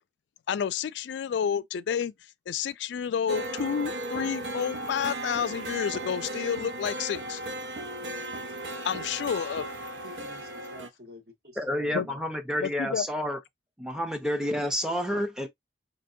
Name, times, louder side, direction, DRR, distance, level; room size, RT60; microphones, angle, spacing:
voice 1, 0.5-2.1 2.5-7.5 8.8-9.7 11.9-12.1 12.6-13.0 15.1-15.2, left 7 dB, 80° left, 0.3 m, -30 dB
sound 1, 3.3-10.9, right 1 dB, 90° right, 0.5 m, -36 dB
voice 2, 10.0-12.2, equal, 60° right, 1.8 m, -49 dB
voice 3, 11.6-13.4 13.8-15.5, equal, 5° right, 0.5 m, -29 dB
4.4 x 2.8 x 2.5 m
head